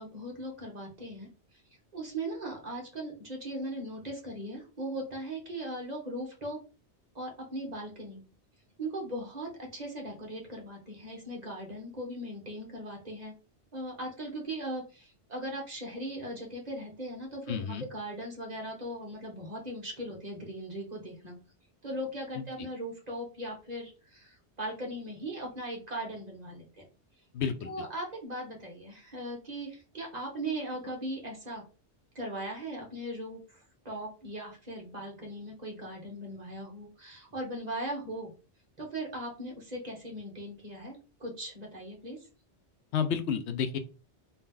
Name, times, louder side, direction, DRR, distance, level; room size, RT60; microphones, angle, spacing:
voice 1, 0.0-1.6 1.9-6.6 7.1-8.2 8.8-13.3 13.7-21.4 21.8-26.8 27.6-31.6 32.1-38.3 38.8-42.3, right 1 dB, 40° right, -1 dB, 1.5 m, -39 dB
voice 2, 17.5-17.8 22.4-22.5 27.3-27.7 42.9-43.8, left 7 dB, 80° left, 9 dB, 0.9 m, -30 dB
3.8 x 2.9 x 3.8 m, 0.34 s
omnidirectional pair, 1.1 m